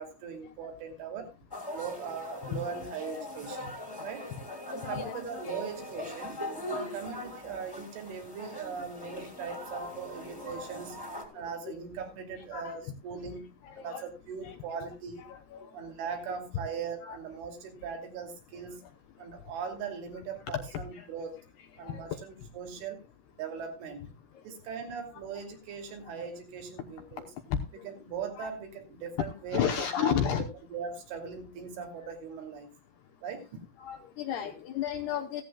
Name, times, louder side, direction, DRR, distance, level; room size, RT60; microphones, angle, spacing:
voice 1, 0.0-1.3 1.7-4.3 4.7-6.4 6.7-11.0 11.3-15.3 15.7-18.9 19.2-21.4 21.8-23.0 23.3-24.0 24.4-27.3 27.8-32.7 33.2-33.4 34.4-34.5, right 6 dB, 75° right, 5 dB, 5.0 m, -40 dB
sound 1, 1.5-11.2, left 1 dB, 5° left, 2.0 m, -41 dB
voice 2, 4.8-5.2 12.5-12.7 13.6-14.0 14.4-14.6 15.3-15.7 17.0-17.2 20.9-21.1 21.8-22.0 27.5-27.6 28.4-28.5 29.5-30.4 33.8-35.4, left 9 dB, 70° left, 6 dB, 2.5 m, -32 dB
16.0 x 14.0 x 2.3 m, 0.27 s
omnidirectional pair, 5.7 m